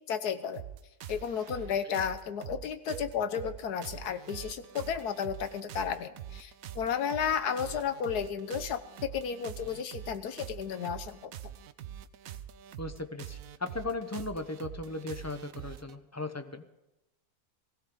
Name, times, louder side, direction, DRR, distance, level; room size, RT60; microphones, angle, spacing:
voice 1, 0.1-0.6 1.1-11.3, left 7 dB, 85° left, 11 dB, 1.5 m, -33 dB
sound 1, 0.5-15.9, right 10 dB, 70° right, 1.1 m, -44 dB
voice 2, 12.8-16.6, left 2 dB, 20° left, 8 dB, 0.4 m, -37 dB
20.0 x 16.0 x 3.8 m, 0.94 s
omnidirectional pair, 1.6 m